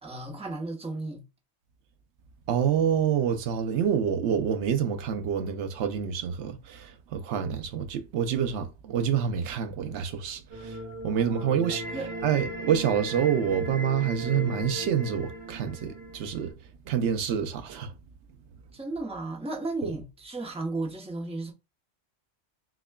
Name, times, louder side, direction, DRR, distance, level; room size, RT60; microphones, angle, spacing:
voice 1, 0.0-1.2 11.1-11.5 11.9-12.1 18.7-21.5, right 2 dB, 5° right, 0.7 m, -34 dB
voice 2, 2.5-10.8 11.0-11.8 12.2-16.5 16.9-17.9 19.8-19.9, right 8 dB, 85° right, 0.9 m, -27 dB
sound 1, 10.5-16.5, equal, 65° right, 2.2 m, -37 dB
5.9 x 2.2 x 2.2 m
omnidirectional pair, 1.1 m